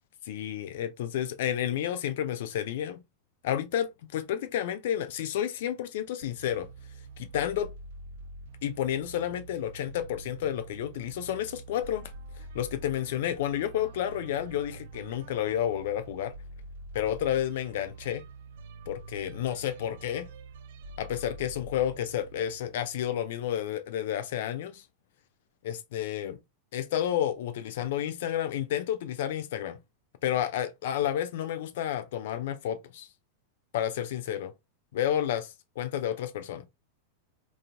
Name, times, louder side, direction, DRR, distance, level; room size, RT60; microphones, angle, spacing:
voice 1, 0.2-3.0 3.4-6.7 7.2-7.7 8.6-12.1 12.5-16.3 16.9-18.2 18.9-20.3 21.0-24.8 25.6-26.4 26.7-29.8 30.2-33.1 33.7-34.5 34.9-36.6, left 10 dB, 55° left, 0.3 m, -31 dB
sound 1, 6.2-23.5, right 2 dB, 55° right, 0.3 m, -46 dB
3.7 x 2.3 x 2.2 m
figure-of-eight pair, 90°, 0 cm